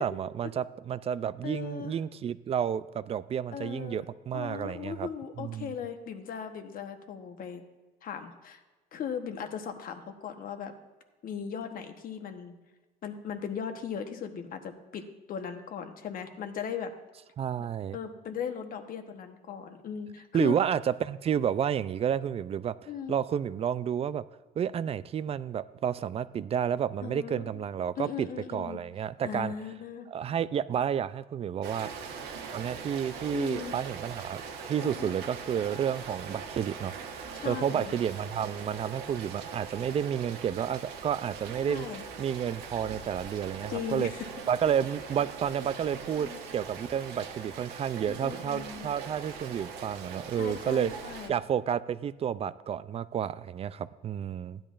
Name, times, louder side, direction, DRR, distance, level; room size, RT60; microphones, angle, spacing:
voice 1, 0.0-5.1 5.4-5.7 17.4-18.0 20.3-22.7 23.1-24.2 24.6-29.5 30.1-31.9 32.5-41.9 42.2-44.1 44.5-50.9 51.3-54.6, right 8 dB, 35° right, 16 dB, 0.4 m, -31 dB
voice 2, 1.4-1.9 3.5-4.0 4.3-7.6 8.0-8.6 8.9-10.7 11.2-12.6 13.0-16.9 17.6-17.7 17.9-20.6 22.9-23.2 27.0-27.6 28.0-28.8 29.2-30.1 33.3-33.7 34.8-35.2 37.3-37.9 41.7-42.0 43.7-44.2 46.1-46.4 48.1-48.9 50.3-51.3, left 7 dB, 55° left, 6 dB, 1.1 m, -38 dB
Rain, 31.6-51.3, right 5 dB, 80° right, 1.2 m, -42 dB
15.0 x 10.5 x 2.5 m, 1.2 s
cardioid pair, 110°, 17 cm